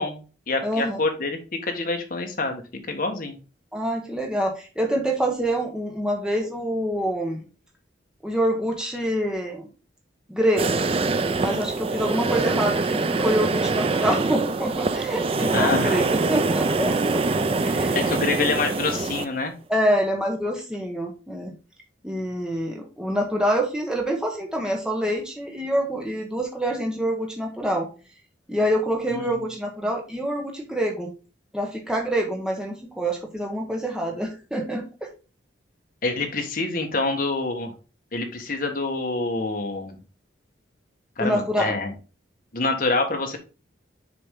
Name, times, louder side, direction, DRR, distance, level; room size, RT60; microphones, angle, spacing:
voice 1, 0.0-1.4 1.7-2.6 2.9-3.4 15.5-16.0 17.9-19.6 29.1-29.4 36.0-37.7 38.1-40.0 41.2-41.9 42.5-43.4, left 3 dB, 45° left, 4 dB, 1.2 m, -26 dB
voice 2, 0.6-1.0 3.7-7.5 8.2-9.7 10.3-10.8 11.4-17.2 17.6-18.1 19.7-21.5 22.0-27.9 28.5-31.1 31.5-35.1 41.2-41.8, equal, 5° right, 0 dB, 1.0 m, -26 dB
sound 1, 10.6-19.2, right 3 dB, 30° right, 0.4 m, -24 dB
6.8 x 4.3 x 3.6 m, 0.33 s
head